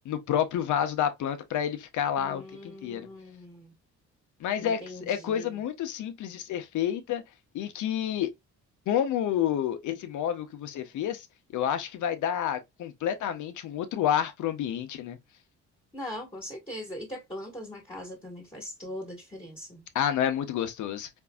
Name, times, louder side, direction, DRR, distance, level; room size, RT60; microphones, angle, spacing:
voice 1, 0.0-3.1 4.4-7.2 7.5-8.3 8.9-11.3 11.5-15.2 19.9-21.1, left 10 dB, 75° left, 0.8 m, -29 dB
voice 2, 2.2-3.7 4.6-5.6 15.9-19.9, left 1 dB, 15° left, 1.5 m, -41 dB
4.5 x 2.5 x 2.2 m
cardioid pair, 90°, 30 cm